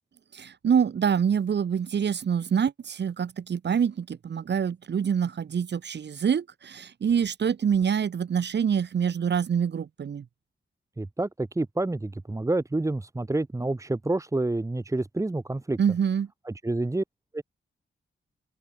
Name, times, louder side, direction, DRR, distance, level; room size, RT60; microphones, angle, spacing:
voice 1, 0.3-10.2 15.8-16.3, right 7 dB, 60° right, 1.5 m, -26 dB
voice 2, 11.0-15.8 16.4-17.0 17.3-17.4, right 2 dB, 15° right, 1.6 m, -28 dB
open air
wide cardioid pair, 130°, 20 cm